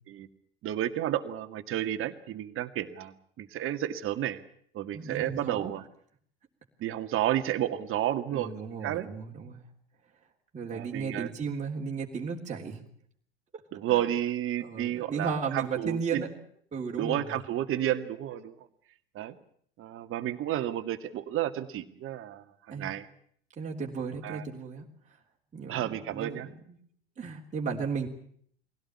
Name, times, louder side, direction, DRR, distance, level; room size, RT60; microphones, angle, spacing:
voice 1, 0.6-4.4 4.7-5.8 6.8-8.5 8.8-9.1 10.7-11.3 13.7-16.2 16.9-18.5 19.1-19.4 19.8-22.4 22.7-23.1 24.2-24.4 25.7-26.5, right 12 dB, 40° right, 9 dB, 2.1 m, -31 dB
voice 2, 4.9-5.7 8.3-9.6 10.5-12.8 13.9-14.1 14.6-16.3 16.7-17.3 22.7-22.9 23.6-24.9 25.5-26.8 27.2-28.1, right 5 dB, 20° right, -3 dB, 3.4 m, -35 dB
22.5 x 17.0 x 9.9 m, 0.64 s
hypercardioid pair, 85°, 31 cm